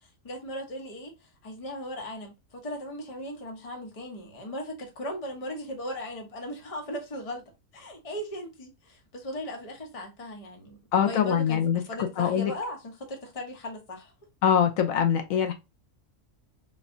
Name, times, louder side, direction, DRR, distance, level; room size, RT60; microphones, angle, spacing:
voice 1, 0.0-7.4 7.7-10.8 11.0-14.1, equal, 30° left, 0.8 m, -37 dB
voice 2, 10.9-11.8 12.2-12.5 14.4-15.5, left 8 dB, 80° left, 1.0 m, -23 dB
4.0 x 2.3 x 2.6 m
omnidirectional pair, 1.4 m